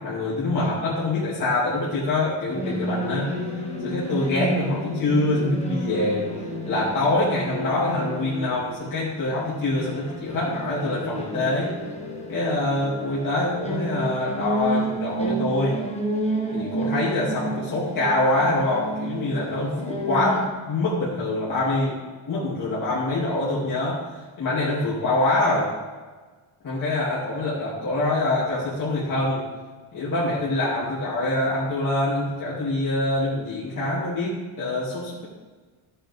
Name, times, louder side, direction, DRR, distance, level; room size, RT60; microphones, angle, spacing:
voice 1, 0.0-3.3 3.8-6.3 6.7-11.7 12.3-15.8 16.5-22.0 22.3-24.0 24.4-25.7 26.6-29.4 29.9-35.2, left 2 dB, 40° left, -8 dB, 2.7 m, -25 dB
sound 1, 2.5-20.5, right 1 dB, 15° left, 1.4 m, -31 dB
15.0 x 7.8 x 3.6 m, 1.4 s
cardioid pair, 175°, 49 cm